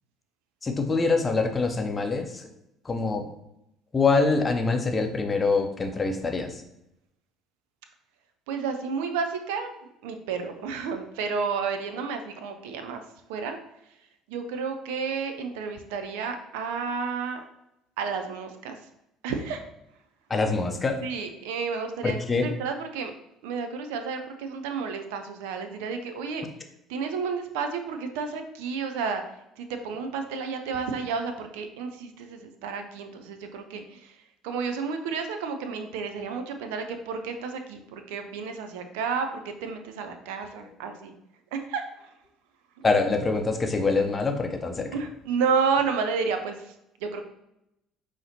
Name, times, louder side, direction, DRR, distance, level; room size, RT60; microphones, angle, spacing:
voice 1, 0.6-2.4 2.8-3.3 3.9-6.6 20.3-21.0 22.0-22.5 42.8-44.9, left 4 dB, 25° left, 5 dB, 0.6 m, -25 dB
voice 2, 8.5-13.0 13.3-13.6 14.3-17.4 18.0-18.8 19.2-19.7 21.0-23.1 23.4-26.5 26.9-29.2 29.6-34.2 34.4-41.1 41.5-42.1 42.8-42.9 44.9-46.7 47.0-47.2, right 5 dB, 70° right, 6 dB, 0.4 m, -31 dB
5.5 x 2.8 x 2.7 m, 0.83 s
figure-of-eight pair, 55°, 0 cm